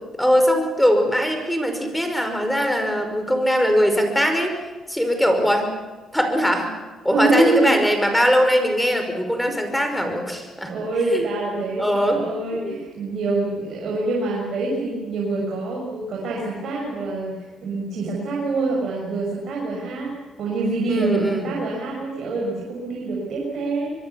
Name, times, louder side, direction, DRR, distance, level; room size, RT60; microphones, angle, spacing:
voice 1, 0.2-4.5 4.9-5.7 6.1-6.7 7.0-10.8 11.1-11.3 11.6-12.2 12.5-12.8 20.9-21.5, equal, 5° left, 5 dB, 5.4 m, -21 dB
voice 2, 7.1-7.7 10.7-20.1 20.4-23.9, right 2 dB, 65° right, -3 dB, 6.5 m, -25 dB
24.0 x 23.0 x 7.2 m, 1.3 s
cardioid pair, 90°, 0 cm